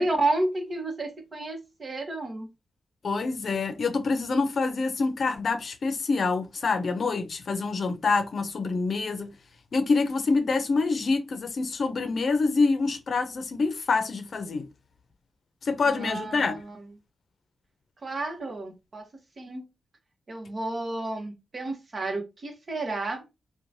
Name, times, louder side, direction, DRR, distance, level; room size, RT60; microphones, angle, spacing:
voice 1, 0.0-2.5 15.8-16.9 18.0-19.1 19.4-19.7 20.3-23.2, right 2 dB, 45° right, 0.9 m, -31 dB
voice 2, 3.0-9.3 9.7-14.6 15.6-16.5, left 4 dB, 60° left, 0.6 m, -26 dB
2.9 x 2.2 x 2.6 m
cardioid pair, 65°, 0 cm